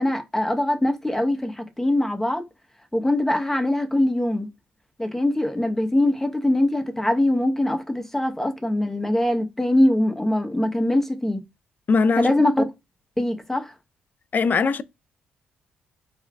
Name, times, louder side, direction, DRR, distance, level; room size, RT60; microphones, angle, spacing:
voice 1, 0.0-2.5 2.9-4.5 5.0-11.4 12.2-12.6 13.2-13.7, left 1 dB, 10° left, 1.0 m, -22 dB
voice 2, 11.9-12.3 14.3-14.8, left 4 dB, 45° left, 0.4 m, -20 dB
4.3 x 3.4 x 2.3 m
supercardioid pair, 55°, 4 cm